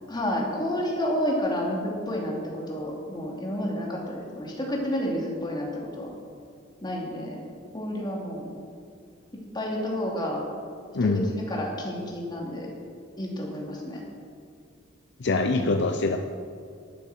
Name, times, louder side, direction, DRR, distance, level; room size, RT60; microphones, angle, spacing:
voice 1, 0.1-6.1 6.8-7.4 7.7-8.4 9.5-10.4 11.0-12.7 13.2-14.0 15.6-15.7, equal, 20° left, -2 dB, 2.8 m, -30 dB
voice 2, 10.9-11.3 15.2-16.2, left 3 dB, 60° left, 6 dB, 0.6 m, -24 dB
12.0 x 9.1 x 7.9 m, 2.2 s
head